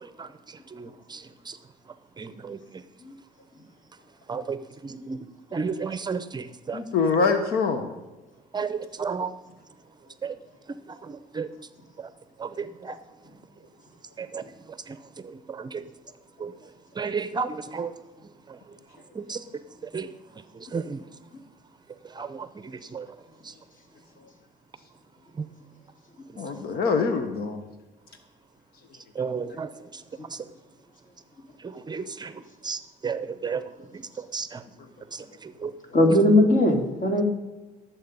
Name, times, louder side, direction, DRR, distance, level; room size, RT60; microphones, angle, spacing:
voice 1, 0.7-1.6 2.2-2.6 4.3-4.6 4.8-5.2 5.5-6.8 8.5-9.3 10.2-10.3 11.0-11.5 12.0-12.1 12.4-13.0 14.2-14.4 14.9-15.0 15.2-15.8 16.4-16.5 17.0-17.9 18.5-18.6 19.1-19.4 19.9-20.1 20.5-21.0 22.1-22.5 22.9-23.1 23.4-23.5 25.4-25.5 29.2-29.7 30.3-30.4 31.6-33.6 34.2-34.6 35.1-35.7, right 5 dB, 25° right, 13 dB, 0.6 m, -33 dB
voice 2, 6.7-7.9 26.4-27.6, left 4 dB, 65° left, 7 dB, 1.2 m, -24 dB
voice 3, 35.9-37.2, left 1 dB, 50° left, 3 dB, 3.0 m, -19 dB
18.0 x 7.5 x 5.4 m, 1.1 s
cardioid pair, 110°, 17 cm